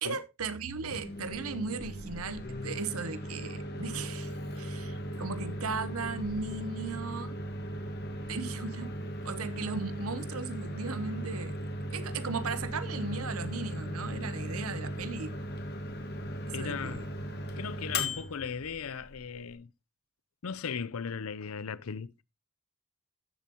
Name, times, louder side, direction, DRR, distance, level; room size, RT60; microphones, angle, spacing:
voice 1, 0.0-7.4 8.3-8.9 9.2-11.6 11.9-15.4 16.5-17.0, right 4 dB, 90° right, 0.9 m, -37 dB
Microwave oven, 0.7-19.5, equal, 50° left, 2.0 m, -38 dB
voice 2, 16.5-17.0 17.6-19.7 20.4-22.2, left 6 dB, 85° left, 0.6 m, -37 dB
14.0 x 7.0 x 2.9 m
head